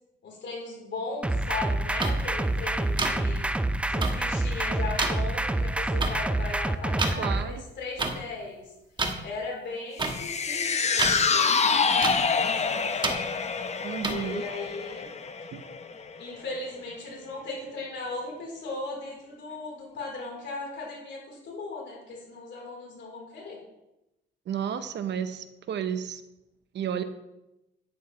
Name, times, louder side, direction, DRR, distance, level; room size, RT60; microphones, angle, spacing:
voice 1, 0.2-3.5 3.9-8.6 9.2-13.2 14.0-15.1 16.2-23.6, left 3 dB, 65° left, -2 dB, 3.8 m, -37 dB
sound 1, 1.2-7.4, right 2 dB, 5° right, 0.4 m, -27 dB
sound 2, 2.0-2.1 3.0-3.1 4.0-4.1 5.0-5.1 6.0-6.1 7.0-7.1 8.0-8.1 9.0-9.1 10.0-10.1 11.0-11.2 12.0-12.1 13.0-13.1 14.0-14.1, right 3 dB, 25° right, 1.2 m, -27 dB
voice 2, 7.2-7.6 13.8-14.4 15.5-15.6 24.5-26.2 26.7-27.0, right 8 dB, 65° right, 10 dB, 0.8 m, -32 dB
sound 3, 10.0-16.5 16.8-16.9, left 5 dB, 35° left, 0.7 m, -27 dB
9.6 x 8.8 x 3.2 m, 0.93 s
cardioid pair, 90°, 20 cm